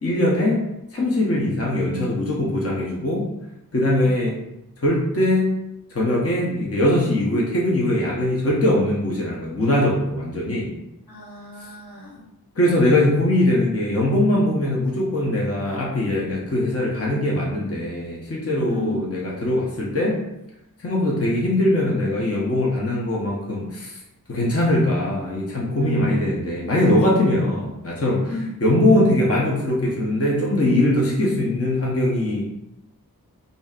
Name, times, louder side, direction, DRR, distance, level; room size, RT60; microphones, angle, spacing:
voice 1, 0.0-0.6 0.9-3.3 3.7-4.4 4.8-5.5 5.9-10.7 12.6-20.2 20.8-24.0 24.3-32.4, left 1 dB, 40° left, -3 dB, 0.9 m, -21 dB
voice 2, 11.1-12.2 18.7-19.0 25.8-26.3 28.3-28.5, left 2 dB, 75° left, -5 dB, 1.3 m, -32 dB
4.9 x 2.8 x 2.4 m, 0.87 s
wide cardioid pair, 55°, 37 cm